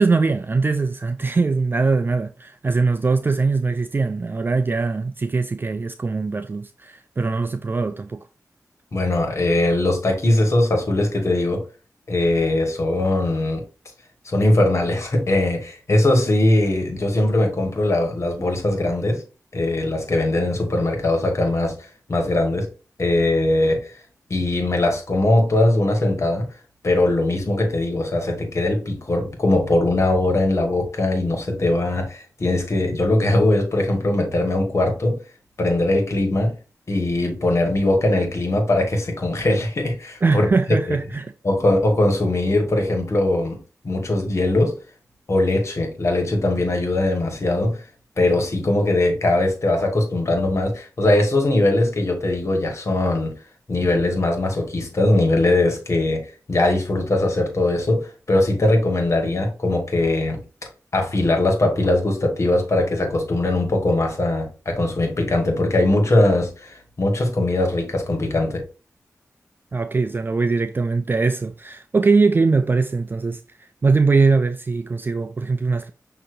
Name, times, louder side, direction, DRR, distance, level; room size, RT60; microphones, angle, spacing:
voice 1, 0.0-8.2 40.2-41.3 69.7-75.9, right 4 dB, 35° right, 0.3 m, -21 dB
voice 2, 8.9-11.6 12.1-13.6 14.2-19.2 19.5-21.7 22.1-22.7 23.0-23.9 24.3-26.5 26.8-35.2 35.6-36.5 36.9-40.5 40.9-41.0 41.4-43.6 43.8-44.7 45.3-47.8 48.2-53.3 53.7-56.2 56.5-60.4 60.9-68.6, left 2 dB, 55° left, 1.6 m, -20 dB
6.4 x 2.9 x 2.6 m
cardioid pair, 60°, 6 cm